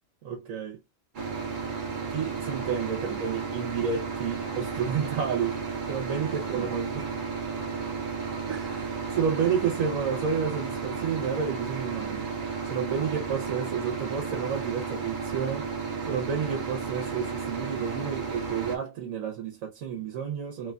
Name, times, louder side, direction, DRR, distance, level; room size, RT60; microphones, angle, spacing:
voice 1, 0.2-0.8 2.1-5.6 5.9-7.2 8.5-12.3 12.7-15.7 16.1-20.7, right 7 dB, 85° right, 1.1 m, -31 dB
sound 1, 1.1-18.8, right 5 dB, 50° right, 0.7 m, -33 dB
3.0 x 2.2 x 2.4 m
omnidirectional pair, 1.4 m